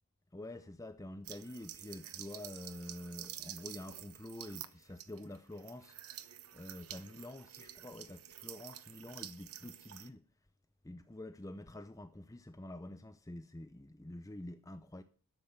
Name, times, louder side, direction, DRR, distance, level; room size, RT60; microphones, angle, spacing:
voice 1, 0.3-6.0 6.5-10.3 10.8-15.0, left 1 dB, 15° left, 0.6 m, -47 dB
sound 1, 1.2-10.1, right 12 dB, 85° right, 1.0 m, -49 dB
12.5 x 7.7 x 7.2 m
head